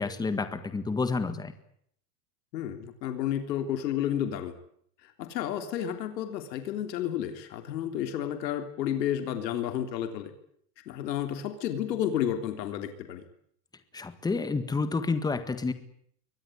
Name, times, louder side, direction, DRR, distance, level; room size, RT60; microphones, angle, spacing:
voice 1, 0.0-1.5 13.9-15.7, left 4 dB, 10° left, 11 dB, 1.7 m, -29 dB
voice 2, 2.5-4.5 5.0-10.3 10.8-13.2, left 10 dB, 90° left, 7 dB, 3.5 m, -31 dB
23.5 x 19.5 x 10.0 m, 0.67 s
supercardioid pair, 160°, 48 cm